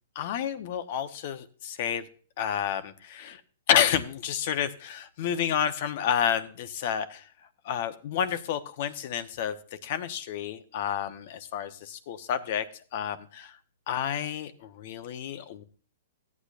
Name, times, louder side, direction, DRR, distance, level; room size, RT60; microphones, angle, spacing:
voice 1, 0.1-2.1 2.4-3.4 3.7-7.3 7.6-9.5 9.8-13.6 13.9-15.6, left 9 dB, 50° left, 11 dB, 0.9 m, -30 dB
15.0 x 8.5 x 2.5 m, 0.41 s
hypercardioid pair, 150°, 0 cm